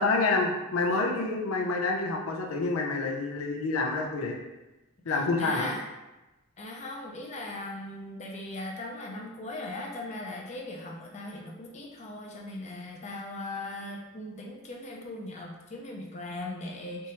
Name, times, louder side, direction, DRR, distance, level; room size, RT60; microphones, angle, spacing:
voice 1, 0.0-4.4 5.0-5.7, left 3 dB, 90° left, 1 dB, 0.6 m, -28 dB
voice 2, 5.1-5.8 6.6-17.1, left 2 dB, 35° left, 0 dB, 0.5 m, -39 dB
3.4 x 2.8 x 2.9 m, 1.0 s
head